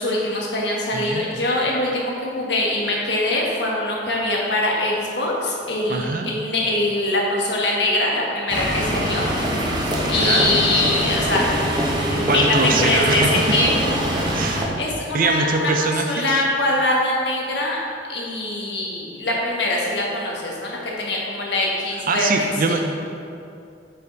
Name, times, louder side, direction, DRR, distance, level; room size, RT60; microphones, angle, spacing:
voice 1, 0.0-9.3 10.1-11.5 12.1-14.0 14.8-17.8 18.1-22.7, left 2 dB, 70° left, -3 dB, 1.5 m, -23 dB
voice 2, 0.9-1.3 5.9-6.3 10.0-10.6 12.3-13.6 14.3-14.7 15.1-16.4 22.1-22.9, right 3 dB, 50° right, 4 dB, 0.6 m, -23 dB
sound 1, 8.5-14.7, equal, 25° right, 1.1 m, -23 dB
8.9 x 5.6 x 4.0 m, 2.5 s
head